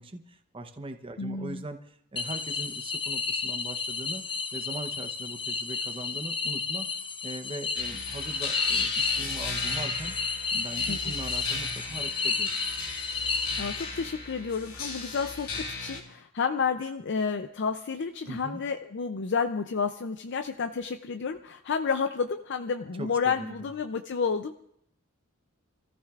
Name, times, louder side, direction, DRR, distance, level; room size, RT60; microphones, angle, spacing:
voice 1, 0.0-6.9 7.2-10.1 10.5-12.6 18.3-18.6 23.0-23.7, right 1 dB, 25° right, 6 dB, 0.8 m, -40 dB
voice 2, 1.2-1.6 10.9-11.0 13.2-24.6, left 5 dB, 55° left, 7 dB, 0.5 m, -30 dB
sound 1, 2.2-14.1, left 4 dB, 25° left, 0.9 m, -31 dB
sound 2, 7.7-16.0, left 3 dB, 85° left, 3.4 m, -37 dB
28.5 x 14.5 x 2.4 m, 0.72 s
head